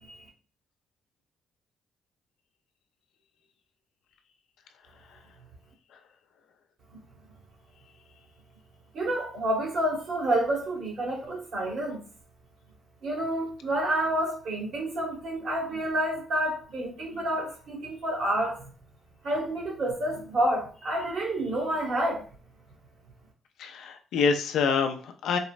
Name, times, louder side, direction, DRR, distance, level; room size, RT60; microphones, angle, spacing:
voice 1, 8.9-12.0 13.0-18.7 19.2-22.3, right 1 dB, 65° right, -3 dB, 1.6 m, -29 dB
voice 2, 23.6-25.4, left 5 dB, 80° left, 6 dB, 0.4 m, -26 dB
4.1 x 2.0 x 2.4 m, 0.39 s
cardioid pair, 90°, 0 cm